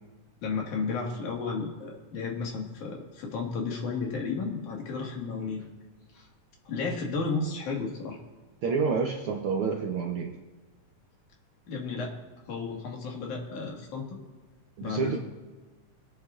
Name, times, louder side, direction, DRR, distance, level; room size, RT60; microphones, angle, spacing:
voice 1, 0.4-5.6 6.1-6.3 6.6-8.2 11.7-12.2 12.5-14.2 14.8-15.2, left 4 dB, 90° left, -1 dB, 3.3 m, -33 dB
voice 2, 8.6-10.4 14.8-15.2, right 5 dB, 65° right, 0 dB, 1.4 m, -28 dB
25.5 x 9.4 x 2.5 m, 1.3 s
omnidirectional pair, 3.4 m